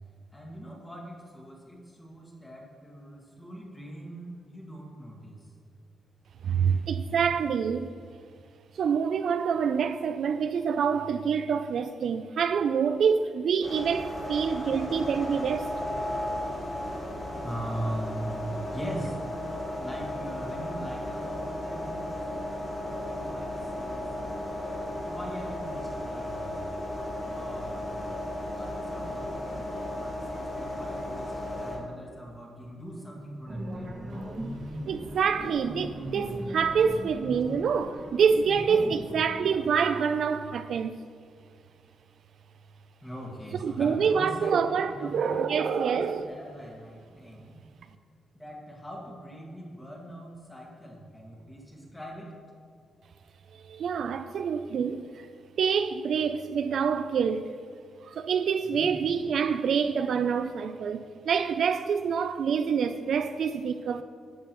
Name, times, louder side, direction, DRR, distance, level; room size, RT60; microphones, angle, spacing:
voice 1, 0.3-5.5 17.3-19.2 19.8-22.1 22.4-24.1 25.1-26.5 27.3-28.1 28.6-34.0 38.6-38.9 43.0-44.5 44.9-47.6 48.3-52.3 58.6-58.9, right 1 dB, 10° left, 1.8 m, -41 dB
voice 2, 6.4-8.0 8.8-15.7 34.9-41.0 43.6-46.3 53.6-55.3 55.6-57.6 58.0-64.0, right 6 dB, 60° right, 0.3 m, -26 dB
sound 1, 13.6-31.8, left 1 dB, 40° left, 2.7 m, -35 dB
sound 2, 33.5-39.7, equal, 40° right, 2.0 m, -38 dB
12.0 x 9.1 x 3.0 m
wide cardioid pair, 175°, 0 cm